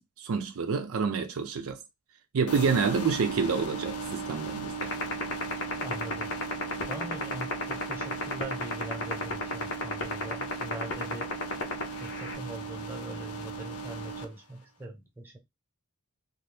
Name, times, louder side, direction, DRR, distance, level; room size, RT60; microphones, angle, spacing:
voice 1, 0.2-1.8 2.3-4.9, right 5 dB, 70° right, 0.4 m, -28 dB
sound 1, 2.5-14.2, right 4 dB, 90° left, 0.6 m, -37 dB
sound 2, 4.8-12.3, left 6 dB, 60° left, 0.8 m, -30 dB
voice 2, 5.8-6.3 6.9-11.3 12.0-15.4, right 1 dB, 10° right, 0.9 m, -41 dB
2.7 x 2.5 x 3.3 m
head